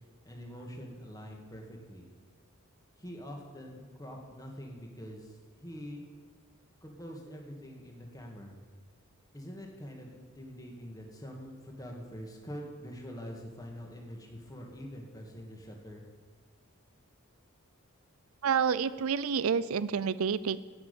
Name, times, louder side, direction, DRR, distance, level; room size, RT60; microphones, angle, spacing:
voice 1, 0.2-2.1 3.0-5.3 5.6-6.1 6.8-8.5 9.3-16.0, equal, 15° left, 1 dB, 1.8 m, -45 dB
voice 2, 18.4-20.6, right 6 dB, 80° right, 17 dB, 0.5 m, -28 dB
10.5 x 7.3 x 8.2 m, 1.4 s
head